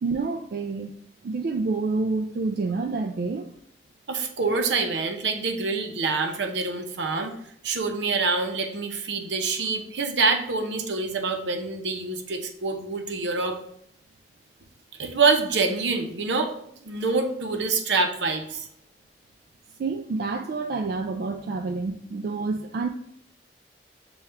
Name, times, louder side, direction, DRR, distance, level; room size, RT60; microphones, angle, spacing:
voice 1, 0.0-0.9 1.2-3.5 19.8-22.9, right 3 dB, 55° right, 4 dB, 0.3 m, -28 dB
voice 2, 4.1-7.3 7.6-13.6 15.0-16.6 16.8-18.7, right 4 dB, 85° right, 5 dB, 0.7 m, -26 dB
6.9 x 2.3 x 3.3 m, 0.71 s
head